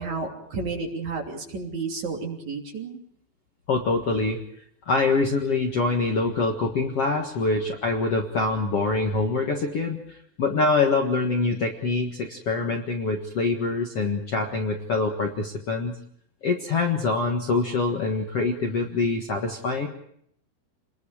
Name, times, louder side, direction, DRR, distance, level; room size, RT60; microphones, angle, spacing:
voice 1, 0.0-3.0, right 4 dB, 45° right, 1 dB, 4.1 m, -31 dB
voice 2, 3.7-4.4 4.9-16.0 16.4-19.9, left 3 dB, 50° left, 1 dB, 2.0 m, -25 dB
29.5 x 21.0 x 5.0 m, 0.68 s
omnidirectional pair, 4.7 m